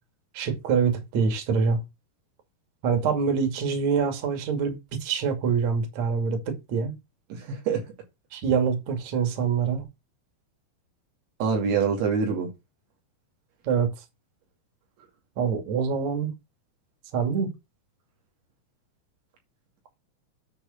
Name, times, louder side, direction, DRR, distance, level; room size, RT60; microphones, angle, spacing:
voice 1, 0.3-1.8 2.8-6.9 8.3-9.9 13.6-13.9 15.4-16.3 17.1-17.5, right 6 dB, 45° right, 3.0 m, -25 dB
voice 2, 7.3-7.8 11.4-12.5, right 6 dB, 85° right, 4.8 m, -25 dB
9.8 x 4.1 x 7.1 m
omnidirectional pair, 5.0 m